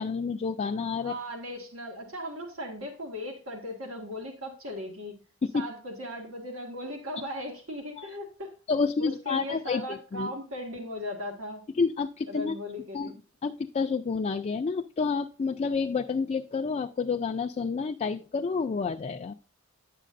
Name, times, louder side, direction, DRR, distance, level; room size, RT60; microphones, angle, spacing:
voice 1, 0.0-1.1 5.4-5.6 8.0-8.1 8.7-10.3 11.8-12.6 12.9-13.1 13.4-19.3, left 5 dB, 30° left, 5 dB, 0.3 m, -29 dB
voice 2, 1.0-5.2 5.5-8.5 9.0-11.6 12.3-13.2, left 1 dB, 90° right, 3 dB, 1.8 m, -38 dB
10.0 x 7.5 x 2.6 m, 0.36 s
head